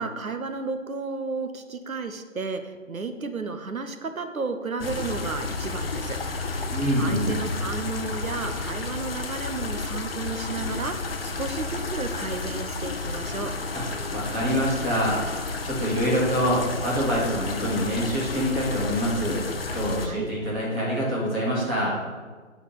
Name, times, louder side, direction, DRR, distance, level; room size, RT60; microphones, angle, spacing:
voice 1, 0.0-13.5 20.0-20.3, right 4 dB, 85° right, 7 dB, 1.0 m, -33 dB
sound 1, 4.8-20.1, left 3 dB, 45° left, 0.7 m, -31 dB
voice 2, 6.7-7.4 13.7-13.8 14.1-15.2 15.6-19.4 19.7-22.0, equal, 10° right, -7 dB, 1.0 m, -25 dB
8.3 x 4.3 x 7.1 m, 1.5 s
figure-of-eight pair, 160°, 40 cm